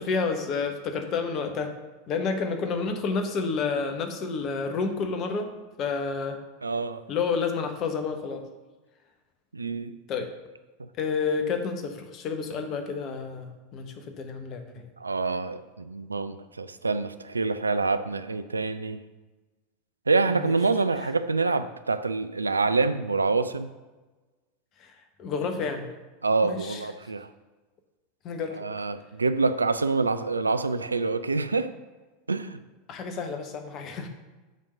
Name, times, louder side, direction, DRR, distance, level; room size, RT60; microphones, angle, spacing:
voice 1, 0.0-1.7 2.1-5.5 5.8-6.4 7.1-8.4 10.1-10.3 11.0-14.8 20.3-20.5 21.0-21.1 24.8-24.9 25.2-25.9 26.4-26.9 28.2-28.6 32.9-34.1, left 5 dB, 40° left, 1.0 m, -30 dB
voice 2, 6.6-7.0 9.5-9.9 15.0-19.0 20.1-23.7 26.2-27.3 28.6-31.7 32.3-32.6, right 3 dB, 80° right, 0.3 m, -26 dB
7.5 x 3.7 x 6.3 m
figure-of-eight pair, 85°, 0 cm